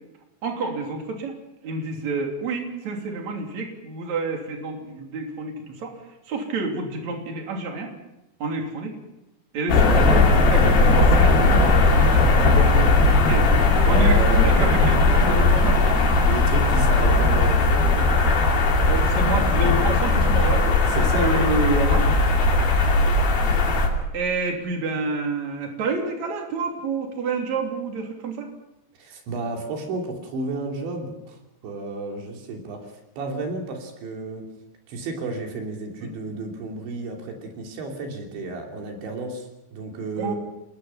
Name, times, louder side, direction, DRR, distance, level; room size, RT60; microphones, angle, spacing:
voice 1, 0.4-1.3 1.6-7.9 8.4-9.0 9.5-13.5 13.9-16.2 17.8-18.3 18.9-22.1 24.1-28.5 36.0-36.1 38.5-38.6 40.2-40.4, right 3 dB, 40° right, 2 dB, 3.9 m, -29 dB
sound 1, 9.7-23.9, left 3 dB, 55° left, 4.5 m, -18 dB
voice 2, 13.9-15.2 16.3-18.2 20.9-21.5 29.0-34.4 34.9-40.4, right 2 dB, 75° right, 2 dB, 5.4 m, -32 dB
27.0 x 20.5 x 5.9 m, 0.91 s
omnidirectional pair, 5.2 m